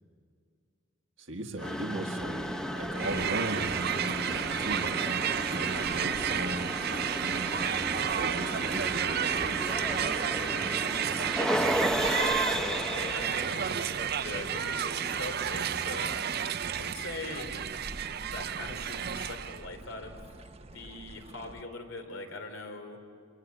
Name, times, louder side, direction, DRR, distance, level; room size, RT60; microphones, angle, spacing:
voice 1, 1.2-2.5 2.7-7.7 8.1-9.6, right 1 dB, 65° right, 2 dB, 1.7 m, -38 dB
sound 1, 1.6-16.5, equal, 5° left, 0.8 m, -35 dB
sound 2, 2.2-21.6, right 1 dB, 30° right, 1.0 m, -47 dB
Crowd, 2.9-19.6, right 8 dB, 50° right, 0.6 m, -31 dB
voice 2, 12.0-16.4 16.7-17.9 18.2-20.2 20.6-23.0, left 2 dB, 75° left, 5 dB, 3.4 m, -42 dB
25.5 x 23.5 x 9.8 m, 2.2 s
head